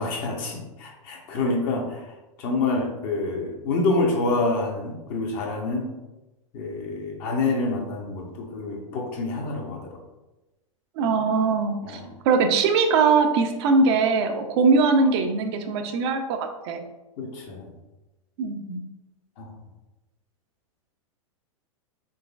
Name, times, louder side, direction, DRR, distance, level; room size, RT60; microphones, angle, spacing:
voice 1, 0.0-2.1 2.4-5.9 6.5-10.0 11.8-12.1 17.2-17.7 19.4-19.5, left 3 dB, 45° left, 1 dB, 0.9 m, -27 dB
voice 2, 11.0-12.0 12.3-16.4 16.6-16.8 18.4-18.8, right 4 dB, 50° right, 5 dB, 0.5 m, -21 dB
3.9 x 3.1 x 2.3 m, 1.0 s
hypercardioid pair, 110°, 18 cm